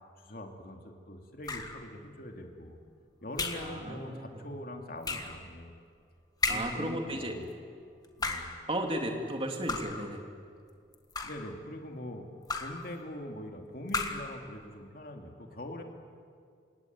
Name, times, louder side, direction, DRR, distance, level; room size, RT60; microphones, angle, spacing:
voice 1, 0.2-2.8 3.2-5.7 6.5-7.5 8.2-8.5 11.2-12.3 12.6-15.8, left 1 dB, 50° left, 3 dB, 2.6 m, -43 dB
sound 1, 1.5-1.9 3.4-3.8 5.0-5.4 6.4-6.9 8.0-8.6 9.7-10.1 10.9-11.5 12.5-12.9 13.9-14.4, left 3 dB, 20° left, 1.6 m, -34 dB
voice 2, 3.6-4.4 6.5-7.4 8.7-10.2, right 1 dB, 30° right, 3 dB, 2.8 m, -35 dB
29.0 x 17.5 x 9.5 m, 2.3 s
head